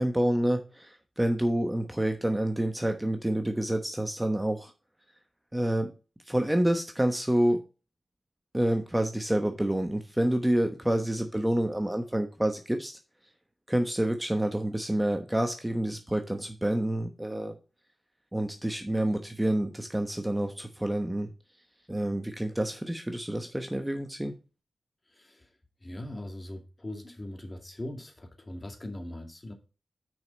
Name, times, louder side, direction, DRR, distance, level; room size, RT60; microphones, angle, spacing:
voice 1, 0.0-4.7 5.5-5.9 6.3-7.6 8.5-13.0 13.7-17.6 18.3-21.3 21.9-24.3, right 1 dB, 10° right, 6 dB, 1.0 m, -28 dB
voice 2, 25.1-25.5 25.8-29.5, left 1 dB, 30° left, 4 dB, 2.2 m, -40 dB
6.2 x 5.3 x 5.2 m, 0.32 s
cardioid pair, 55°, 0 cm